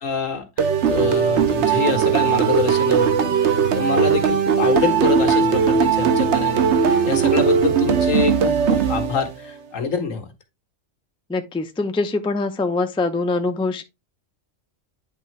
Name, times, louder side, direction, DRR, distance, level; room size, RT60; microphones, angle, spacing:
voice 1, 0.0-6.7 7.0-10.3, left 5 dB, 90° left, 1.8 m, -26 dB
sound 1, 0.6-9.5, right 6 dB, 65° right, 1.1 m, -19 dB
voice 2, 11.3-13.8, left 3 dB, 5° left, 0.4 m, -23 dB
9.8 x 3.7 x 3.2 m
omnidirectional pair, 1.3 m